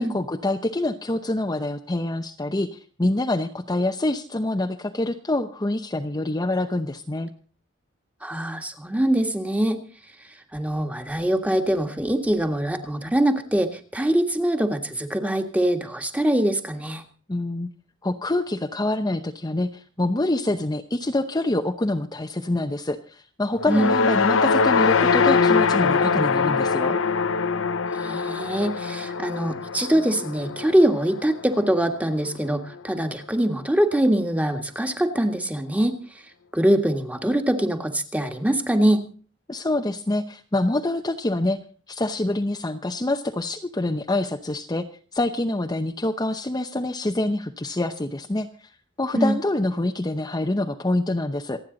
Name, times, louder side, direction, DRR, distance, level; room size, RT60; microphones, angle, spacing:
voice 1, 0.0-7.3 17.3-17.7 18.0-27.0 39.5-41.6 41.9-44.9 45.1-48.5 49.0-51.6, left 2 dB, 20° left, 4 dB, 0.8 m, -26 dB
voice 2, 8.2-9.8 10.5-17.0 23.7-23.9 28.0-36.0 36.5-39.0 49.1-49.3, right 1 dB, 5° right, 6 dB, 1.7 m, -23 dB
sound 1, 23.6-31.9, left 5 dB, 70° left, 0.7 m, -23 dB
27.5 x 9.3 x 3.9 m, 0.40 s
head